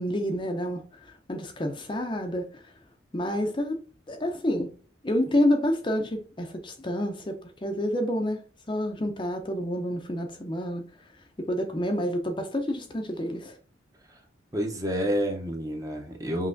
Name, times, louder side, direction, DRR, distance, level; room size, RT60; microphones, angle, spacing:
voice 1, 0.0-2.7 3.1-3.8 4.1-4.7 5.0-10.8 11.4-13.6, left 1 dB, 25° left, 0.5 m, -29 dB
voice 2, 14.5-16.5, equal, 20° right, 0.7 m, -29 dB
5.6 x 2.9 x 2.6 m
head